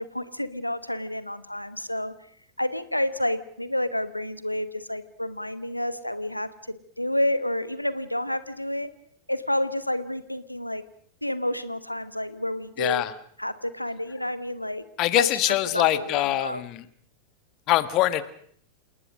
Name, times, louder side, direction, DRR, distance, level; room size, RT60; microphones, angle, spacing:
voice 1, 0.0-2.1 2.6-8.9 9.3-10.8 11.2-13.0 13.4-14.8 15.1-16.6, left 1 dB, 90° left, 15 dB, 1.2 m, -29 dB
voice 2, 12.8-13.1 15.0-16.8 17.7-18.2, left 15 dB, 40° left, 15 dB, 1.5 m, -23 dB
28.0 x 19.0 x 6.4 m, 0.62 s
figure-of-eight pair, 90°, 0 cm